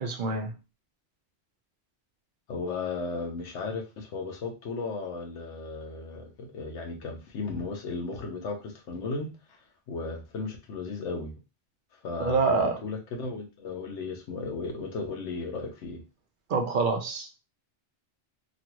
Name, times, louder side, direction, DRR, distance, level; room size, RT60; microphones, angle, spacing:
voice 1, 0.0-0.5 12.2-12.8 16.5-17.4, right 4 dB, 50° right, 4 dB, 0.8 m, -26 dB
voice 2, 2.5-9.3 9.9-11.3 12.0-16.0, left 3 dB, 90° left, 2 dB, 1.0 m, -35 dB
3.0 x 2.5 x 2.9 m, 0.28 s
omnidirectional pair, 1.2 m